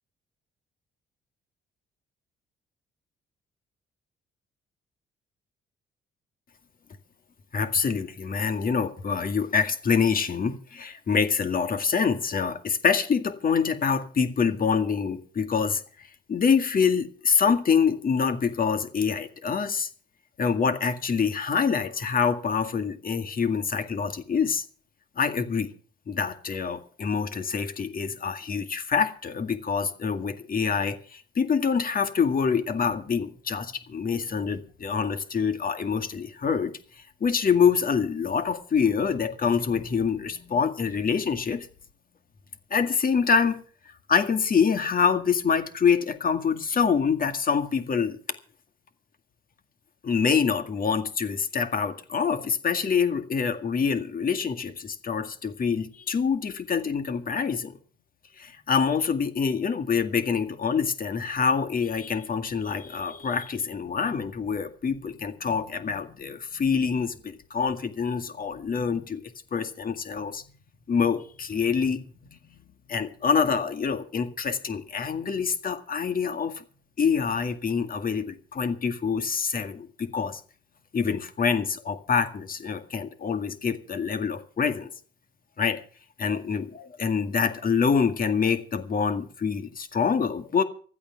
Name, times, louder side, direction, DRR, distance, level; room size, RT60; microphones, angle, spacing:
voice 1, 7.5-19.9 20.4-24.7 25.2-25.7 26.1-41.7 42.7-43.6 44.1-48.2 50.0-57.8 58.4-69.2 69.5-70.4 70.9-72.0 72.3-72.6 72.9-76.6 77.0-80.4 80.9-84.9 85.6-85.8 86.2-90.6, left 6 dB, 45° left, 2.0 m, -26 dB
15.5 x 11.5 x 5.8 m
cardioid pair, 90°, 20 cm